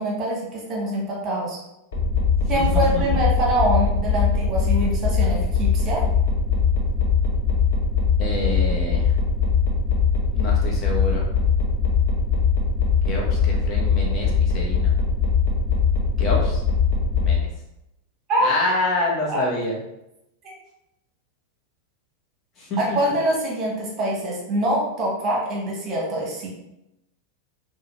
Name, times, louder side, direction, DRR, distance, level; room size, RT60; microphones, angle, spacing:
voice 1, 0.0-1.6 2.5-6.0 18.3-18.5 19.3-19.4 20.4-20.5 22.8-26.5, right 1 dB, 30° right, -3 dB, 1.2 m, -24 dB
sound 1, 1.9-17.4, left 5 dB, 60° left, 1.1 m, -21 dB
voice 2, 8.2-9.1 10.3-11.2 13.1-14.9 16.2-16.6 17.2-17.5 18.4-19.8 22.6-23.0, left 2 dB, 30° left, -3 dB, 1.1 m, -27 dB
4.9 x 2.3 x 3.0 m, 0.87 s
figure-of-eight pair, 90°, 0 cm